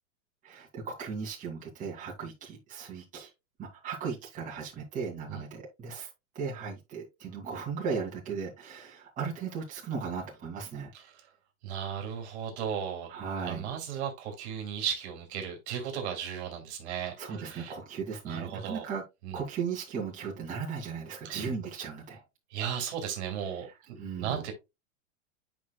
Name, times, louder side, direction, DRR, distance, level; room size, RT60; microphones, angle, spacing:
voice 1, 0.4-3.3 3.6-6.1 6.3-10.9 13.1-13.7 17.0-19.0 19.3-22.2 24.0-24.4, right 5 dB, 20° right, 2.4 m, -37 dB
voice 2, 11.6-13.2 13.4-17.7 18.3-18.9 19.2-19.4 21.2-21.4 22.5-24.5, right 8 dB, 55° right, 2.5 m, -36 dB
9.3 x 5.1 x 2.3 m
supercardioid pair, 160°, 39 cm